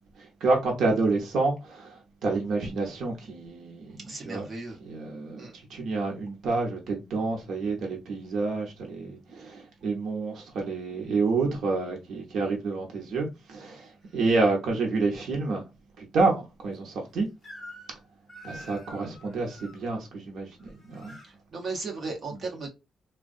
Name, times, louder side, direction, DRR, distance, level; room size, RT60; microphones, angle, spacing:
voice 1, 0.2-4.5 4.8-15.7 16.0-17.3 18.4-21.2, right 3 dB, 60° right, 0.8 m, -29 dB
voice 2, 4.0-4.8 5.4-5.5 21.3-22.7, right 3 dB, 30° right, 0.9 m, -36 dB
Crying sobbing / Screech, 17.4-18.0 18.3-19.8 20.6-21.3, equal, 20° left, 1.2 m, -46 dB
3.5 x 2.2 x 2.4 m
cardioid pair, 180°, 0 cm